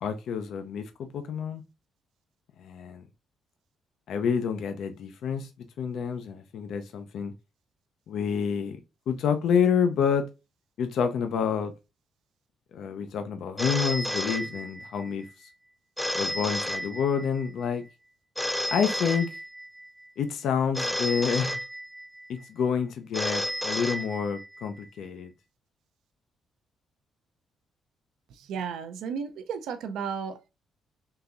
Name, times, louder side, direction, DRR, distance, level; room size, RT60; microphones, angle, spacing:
voice 1, 0.0-1.6 2.6-3.0 4.1-5.5 5.8-7.3 8.1-8.8 9.1-10.3 10.8-11.7 12.7-15.2 16.1-17.8 18.7-19.3 20.2-21.6 22.3-25.3, left 7 dB, 75° left, 0.4 m, -28 dB
Telephone, 13.6-15.1 16.0-17.5 18.4-19.9 20.7-22.2 23.1-24.6, equal, 5° left, 0.3 m, -32 dB
voice 2, 28.4-30.5, right 6 dB, 80° right, 0.4 m, -34 dB
3.7 x 2.8 x 2.4 m
cardioid pair, 90°, 0 cm